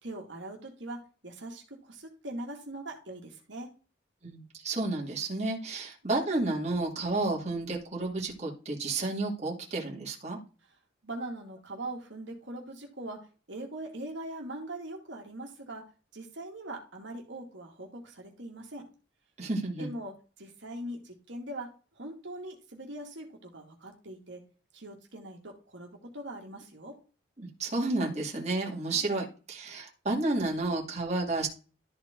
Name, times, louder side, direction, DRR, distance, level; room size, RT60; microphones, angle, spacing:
voice 1, 0.0-3.7 11.0-15.8 16.1-18.9 19.8-24.4 24.7-27.0 28.9-29.0, right 1 dB, 65° right, 1 dB, 2.3 m, -41 dB
voice 2, 4.2-10.4 19.4-19.9 27.4-31.5, right 2 dB, 35° right, -2 dB, 2.2 m, -31 dB
13.0 x 4.5 x 3.8 m, 0.35 s
head